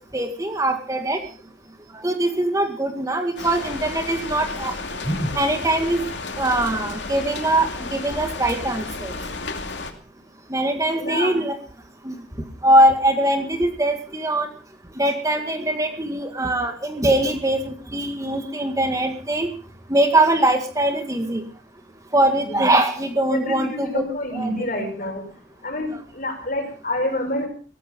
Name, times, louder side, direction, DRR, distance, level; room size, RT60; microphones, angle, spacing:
voice 1, 0.1-1.2 2.0-4.7 5.1-6.0 6.4-9.1 10.5-11.6 12.0-12.1 12.6-14.5 15.0-19.5 19.9-21.4 22.1-24.0 24.3-24.5, right 1 dB, 20° right, 5 dB, 2.0 m, -21 dB
sound 1, 3.4-9.9, left 3 dB, 85° left, 2.7 m, -32 dB
voice 2, 11.0-11.4 22.5-22.6 23.3-25.2 25.6-27.5, left 1 dB, 50° left, 5 dB, 5.7 m, -27 dB
17.0 x 15.0 x 5.3 m, 0.39 s
head